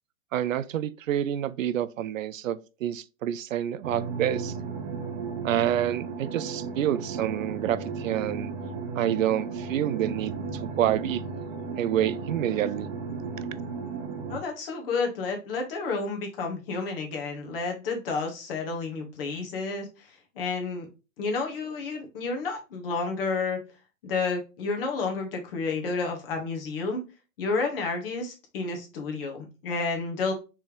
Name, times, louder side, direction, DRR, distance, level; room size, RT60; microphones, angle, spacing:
voice 1, 0.3-4.5 5.4-8.5 8.9-11.2 11.8-12.9, right 11 dB, 70° right, 0.5 m, -28 dB
sound 1, 3.8-14.4, right 5 dB, 40° right, 1.2 m, -34 dB
voice 2, 14.3-20.9 21.2-23.6 24.0-27.0 27.4-30.3, left 4 dB, 40° left, 1.4 m, -30 dB
4.4 x 3.5 x 3.0 m
hypercardioid pair, 145°, 41 cm